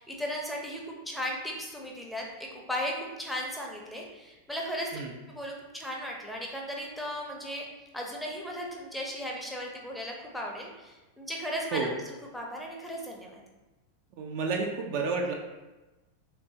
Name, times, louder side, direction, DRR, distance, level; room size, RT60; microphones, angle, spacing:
voice 1, 0.0-4.9 5.3-7.6 7.9-11.9 12.3-13.4, equal, ahead, -2 dB, 0.6 m, -36 dB
voice 2, 14.2-15.3, right 4 dB, 45° right, 2 dB, 0.4 m, -30 dB
3.2 x 3.1 x 2.7 m, 1.1 s
figure-of-eight pair, 90°, 0 cm